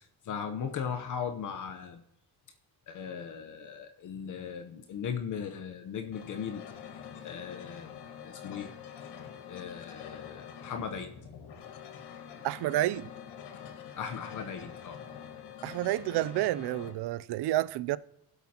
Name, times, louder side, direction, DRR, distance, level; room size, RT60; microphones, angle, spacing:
voice 1, 0.0-2.0 2.9-6.6 7.2-7.9 8.2-8.7 9.5-11.1 14.0-15.0, left 7 dB, 50° left, 0.8 m, -38 dB
sound 1, 6.1-16.9, left 8 dB, 85° left, 1.5 m, -46 dB
voice 2, 12.4-13.1 15.6-18.0, right 15 dB, 75° right, 0.5 m, -29 dB
19.5 x 8.1 x 2.8 m
cardioid pair, 180°, 40 cm